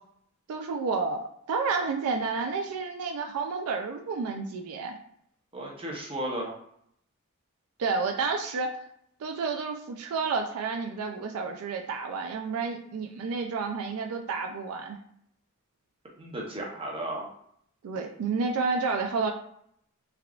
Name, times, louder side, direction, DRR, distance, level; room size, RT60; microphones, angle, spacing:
voice 1, 0.5-4.9 7.8-8.8 9.2-15.0 17.8-19.3, right 4 dB, 75° right, 3 dB, 0.3 m, -30 dB
voice 2, 5.5-6.5 16.2-17.3, right 1 dB, 25° right, -2 dB, 0.7 m, -34 dB
3.4 x 2.3 x 2.3 m, 0.70 s
head